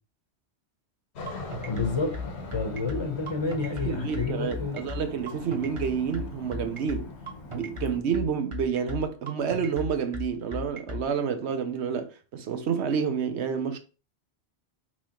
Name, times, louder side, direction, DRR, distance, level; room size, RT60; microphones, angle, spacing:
Aircraft, 1.2-8.0, left 3 dB, 80° left, 1.1 m, -41 dB
sound 1, 1.3-11.0, left 3 dB, 30° right, 1.0 m, -36 dB
voice 1, 1.6-2.2 2.5-4.8, left 3 dB, 30° left, 0.7 m, -30 dB
voice 2, 3.8-7.2 7.5-13.8, right 7 dB, 90° right, 1.0 m, -29 dB
5.9 x 3.1 x 2.9 m
omnidirectional pair, 1.1 m